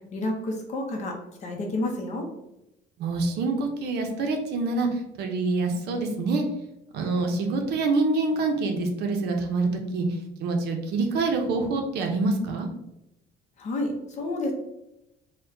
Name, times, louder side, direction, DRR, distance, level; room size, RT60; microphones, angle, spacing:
voice 1, 0.1-2.3 13.6-14.5, left 1 dB, 35° left, 1 dB, 0.6 m, -30 dB
voice 2, 3.0-6.4 6.9-10.1 10.4-12.7, right 3 dB, 55° right, 3 dB, 0.6 m, -26 dB
4.4 x 2.1 x 2.6 m, 0.87 s
cardioid pair, 180°, 20 cm